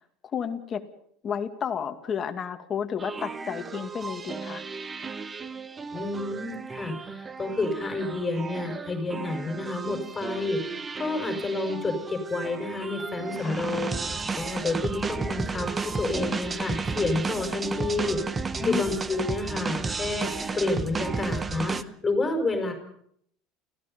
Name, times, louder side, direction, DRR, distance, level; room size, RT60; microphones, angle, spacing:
voice 1, 0.3-0.8 1.2-4.6 13.4-13.7 18.6-18.9, left 7 dB, 35° left, 6 dB, 2.3 m, -32 dB
sound 1, 3.0-21.8, right 4 dB, 20° right, 1.0 m, -33 dB
voice 2, 5.9-21.8 22.0-22.7, left 3 dB, 20° left, 4 dB, 5.2 m, -30 dB
30.0 x 16.5 x 5.4 m, 0.68 s
supercardioid pair, 120°, 0 cm